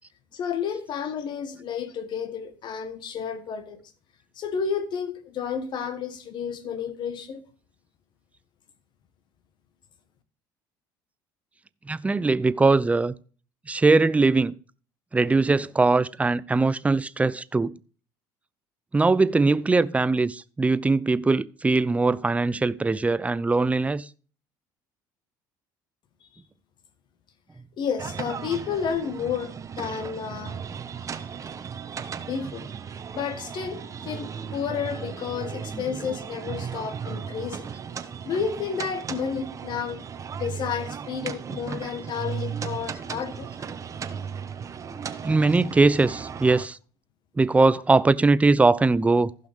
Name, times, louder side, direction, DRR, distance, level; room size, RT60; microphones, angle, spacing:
voice 1, 0.3-3.8 4.4-7.4 27.8-30.6 32.3-32.7 33.1-37.7 38.2-40.0 40.4-43.5, left 7 dB, 55° left, 1.3 m, -31 dB
voice 2, 11.9-13.1 13.7-14.6 15.1-17.8 18.9-24.1 35.7-35.8 45.2-46.8 47.4-49.3, right 3 dB, 15° right, 0.5 m, -21 dB
sound 1, 28.0-46.7, right 7 dB, 35° right, 1.1 m, -36 dB
15.5 x 5.6 x 3.5 m
supercardioid pair, 90°, 9 cm